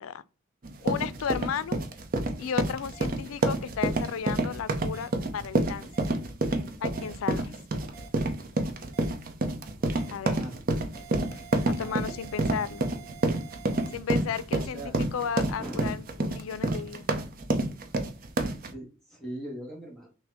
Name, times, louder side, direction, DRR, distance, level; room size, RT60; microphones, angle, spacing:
sound 1, 0.6-18.7, right 2 dB, 45° right, 0.6 m, -28 dB
voice 1, 0.8-1.8 2.4-5.9 6.8-7.5 10.1-10.4 11.3-12.9 13.9-17.1, left 7 dB, 85° left, 0.4 m, -34 dB
sound 2, 2.9-3.1 3.9-4.1 4.9-5.1 5.9-6.1 6.9-7.1 7.9-8.1 8.9-9.1 9.9-10.1 10.9-13.9, right 8 dB, 85° right, 0.8 m, -49 dB
voice 2, 9.7-10.6 11.5-12.0 14.7-14.9 15.2-15.3 15.6-15.8 18.7-20.1, right 1 dB, ahead, 1.1 m, -41 dB
6.0 x 2.1 x 3.4 m
head